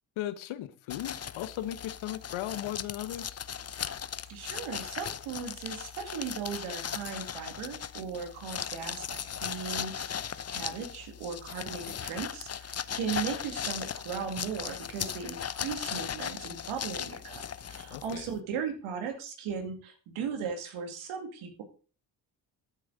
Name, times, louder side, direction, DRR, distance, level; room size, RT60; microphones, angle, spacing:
voice 1, 0.2-3.4 17.9-18.3, left 13 dB, 75° left, 16 dB, 1.1 m, -37 dB
sound 1, 0.9-18.4, left 8 dB, 30° left, 0.7 m, -38 dB
voice 2, 4.3-21.6, right 6 dB, 80° right, 6 dB, 2.4 m, -37 dB
13.5 x 9.4 x 4.0 m, 0.38 s
hypercardioid pair, 45°, 48 cm